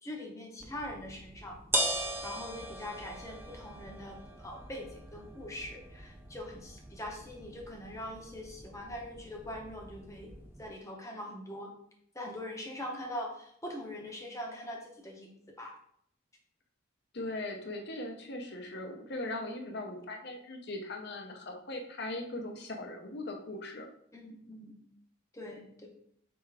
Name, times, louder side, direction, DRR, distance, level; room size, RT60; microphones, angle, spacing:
voice 1, 0.0-1.6 2.2-10.3 10.6-11.7 12.1-15.3 15.6-15.7 24.1-24.7 25.3-25.9, left 1 dB, 15° left, 0 dB, 0.7 m, -42 dB
sound 1, 0.6-10.7, right 1 dB, 10° right, 0.3 m, -40 dB
voice 2, 17.1-23.9, left 2 dB, 50° left, 3 dB, 0.7 m, -39 dB
4.6 x 3.5 x 3.3 m, 0.69 s
head